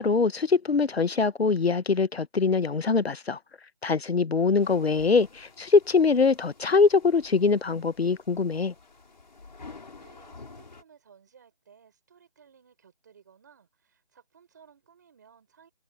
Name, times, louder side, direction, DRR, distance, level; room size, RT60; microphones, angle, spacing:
voice 1, 0.0-3.4 3.8-8.7, left 4 dB, 85° left, 1.1 m, -23 dB
sound 1, 4.6-10.8, left 3 dB, 45° left, 5.4 m, -50 dB
voice 2, 10.0-15.7, right 7 dB, 20° right, 4.7 m, -58 dB
figure-of-eight pair, 175°, 30 cm